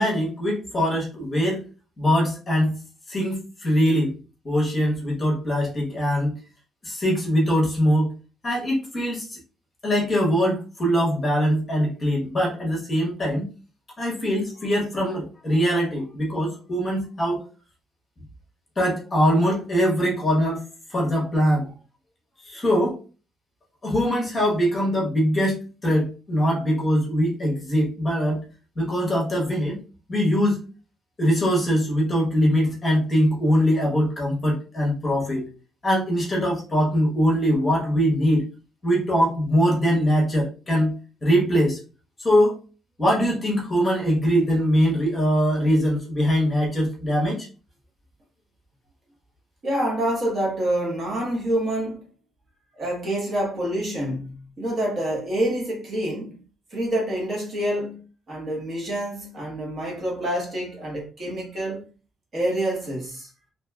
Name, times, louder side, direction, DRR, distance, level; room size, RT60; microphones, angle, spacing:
voice 1, 0.0-1.6 2.0-2.7 3.1-4.1 4.4-6.3 6.8-8.1 8.4-9.4 9.8-13.5 14.0-17.4 18.8-20.6 20.9-21.7 22.4-23.0 23.8-28.4 28.8-29.8 30.1-30.6 31.2-35.4 35.8-38.4 38.8-40.9 41.2-41.8 42.2-42.5 43.0-47.5, equal, 25° left, 1.1 m, -22 dB
voice 2, 49.6-52.0 52.7-56.4 56.7-61.8 62.3-63.3, right 1 dB, 35° right, 1.1 m, -27 dB
2.9 x 2.9 x 2.3 m
cardioid pair, 150°, 0 cm